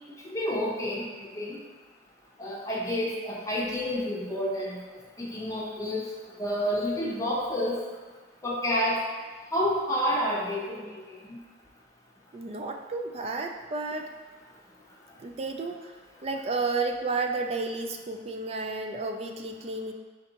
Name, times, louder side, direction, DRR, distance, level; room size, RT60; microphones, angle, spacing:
voice 1, 0.2-1.1 1.4-1.6 2.4-4.8 5.2-6.0 6.4-7.8 8.4-9.0 9.5-11.0 11.2-11.4, equal, 15° left, -4 dB, 0.8 m, -29 dB
voice 2, 12.3-14.1 15.2-15.9 16.2-19.9, right 3 dB, 35° right, 4 dB, 0.3 m, -32 dB
4.4 x 4.0 x 2.8 m, 1.4 s
head